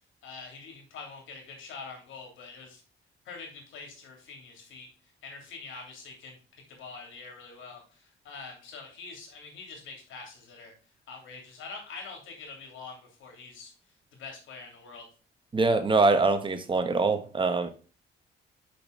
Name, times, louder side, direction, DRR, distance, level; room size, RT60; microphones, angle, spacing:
voice 1, 0.2-2.8 3.2-4.9 5.2-10.7 11.1-13.7 14.1-15.0, left 4 dB, 80° left, 3.0 m, -45 dB
voice 2, 15.5-17.7, right 3 dB, 25° right, 1.1 m, -24 dB
5.9 x 5.4 x 5.2 m
cardioid pair, 90°, 20 cm